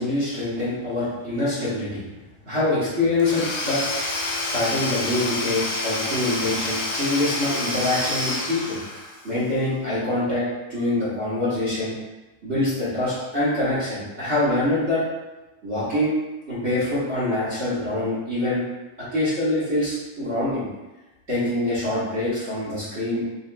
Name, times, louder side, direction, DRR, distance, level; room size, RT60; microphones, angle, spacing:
voice 1, 0.0-2.0 2.4-3.8 4.2-8.8 9.2-11.9 12.4-15.0 15.6-16.1 16.5-18.6 19.1-20.6 21.3-23.2, left 2 dB, 50° right, -11 dB, 0.7 m, -25 dB
Domestic sounds home sounds / Tools, 3.2-9.3, left 2 dB, 80° left, 2.4 m, -28 dB
7.7 x 2.9 x 2.2 m, 1.1 s
omnidirectional pair, 3.7 m